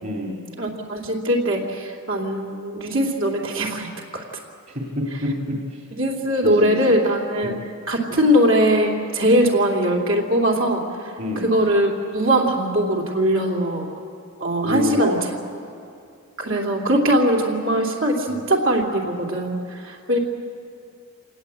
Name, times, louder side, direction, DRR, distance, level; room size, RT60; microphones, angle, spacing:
voice 1, 0.0-0.5 2.8-2.9 5.0-5.8 6.4-6.9 7.4-7.6 11.2-11.5 14.6-15.2 18.3-18.4, left 1 dB, 45° right, -1 dB, 2.6 m, -27 dB
voice 2, 0.6-4.2 5.9-7.5 7.9-13.9 14.4-15.2 16.4-20.2, equal, 60° right, -2 dB, 2.9 m, -21 dB
27.0 x 19.5 x 8.2 m, 2.4 s
head